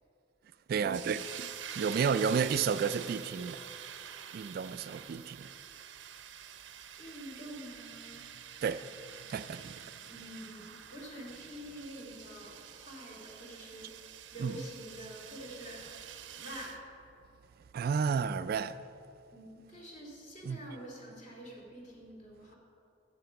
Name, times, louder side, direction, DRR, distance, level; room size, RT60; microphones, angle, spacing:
voice 1, 0.7-3.6 4.3-5.5 8.6-8.9 9.2-9.9 10.1-10.5 14.4-14.7 17.7-18.8 20.4-20.8, right 6 dB, 55° right, 0.3 m, -32 dB
sound 1, 0.9-16.8, right 9 dB, 90° right, 0.6 m, -47 dB
voice 2, 7.0-8.2 10.1-14.0 14.3-15.9 16.3-16.9 19.3-22.6, equal, 40° left, 2.7 m, -47 dB
14.0 x 7.3 x 5.8 m
head